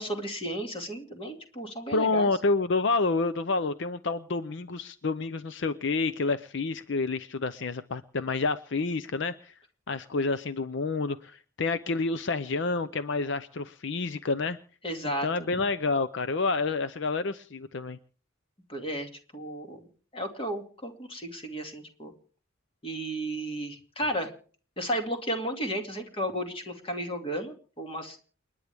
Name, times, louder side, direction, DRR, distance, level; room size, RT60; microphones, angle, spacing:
voice 1, 0.0-2.3 14.8-15.5 18.7-19.8 20.1-22.1 22.8-24.3 24.8-28.2, right 1 dB, 30° left, 3 dB, 2.5 m, -33 dB
voice 2, 1.9-9.5 9.9-14.6 15.2-18.0, left 3 dB, 65° left, 13 dB, 0.6 m, -29 dB
29.5 x 9.9 x 3.5 m, 0.43 s
head